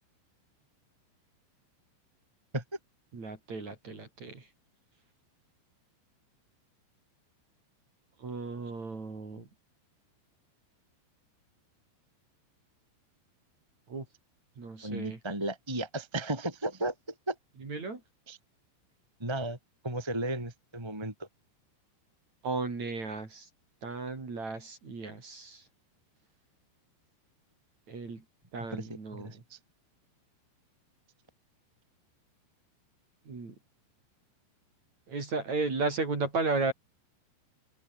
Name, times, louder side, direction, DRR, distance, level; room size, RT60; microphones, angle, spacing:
voice 1, 3.1-4.5 8.2-9.5 13.9-14.1 14.6-15.2 17.6-18.0 22.4-23.5 23.8-25.6 27.9-28.2 28.5-29.4 33.3-33.5 35.1-36.7, right 3 dB, 35° right, 5.9 m, -34 dB
voice 2, 14.8-17.4 18.3-18.4 19.2-19.6 19.8-21.3 28.7-29.6, right 1 dB, 5° right, 3.6 m, -35 dB
omnidirectional pair, 5.5 m